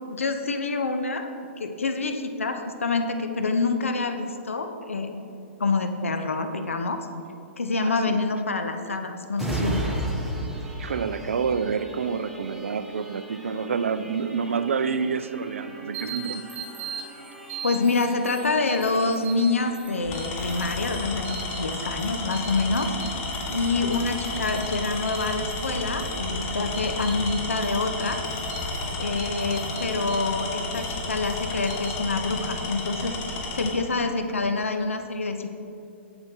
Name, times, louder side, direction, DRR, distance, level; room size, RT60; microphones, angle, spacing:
voice 1, 0.1-1.3 1.6-5.2 5.6-7.1 7.6-10.0 17.6-22.9 23.5-28.2 29.0-33.2 33.5-35.5, left 3 dB, 90° left, 6 dB, 0.7 m, -26 dB
voice 2, 7.8-8.2 10.8-16.6 17.0-17.1 23.5-23.6, right 6 dB, 80° right, 12 dB, 0.5 m, -28 dB
sound 1, 9.3-22.7 23.1-23.3, right 1 dB, ahead, 1.1 m, -37 dB
sound 2, 15.9-31.9, right 6 dB, 25° right, 2.2 m, -43 dB
Tools, 18.8-19.1 20.0-33.8, left 2 dB, 35° left, 1.3 m, -32 dB
7.7 x 7.7 x 4.5 m, 2.6 s
hypercardioid pair, 125°, 7 cm